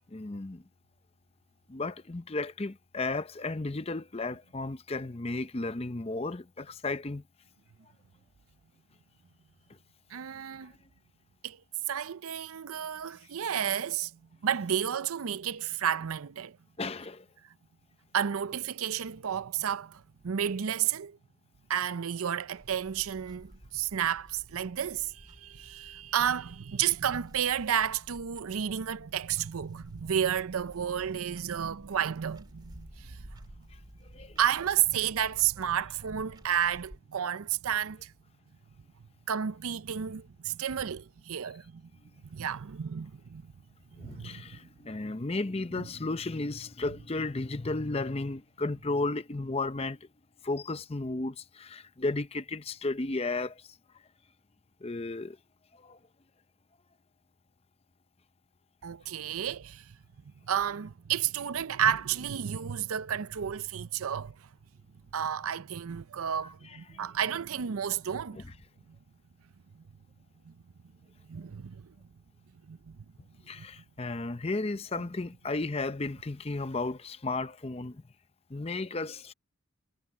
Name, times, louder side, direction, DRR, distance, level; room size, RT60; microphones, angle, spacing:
voice 1, 0.1-0.6 1.7-7.2 16.8-17.3 34.1-34.4 43.9-50.1 50.4-53.6 54.8-55.4 55.7-56.0 66.9-67.0 68.3-68.4 73.5-78.0 78.5-79.3, left 2 dB, 25° left, 0.6 m, -34 dB
voice 2, 10.1-10.7 11.4-11.6 11.9-16.6 18.1-21.2 21.7-33.6 34.4-38.1 39.3-41.9 42.2-43.5 44.0-44.6 45.8-45.9 58.8-59.9 60.2-64.5 65.1-68.4 68.9-69.0 69.7-69.8 70.4-70.6 71.3-72.0 72.6-73.0 73.6-73.7, right 9 dB, 80° right, 0.5 m, -32 dB
Clock, 22.5-37.0, equal, 20° right, 2.2 m, -53 dB
head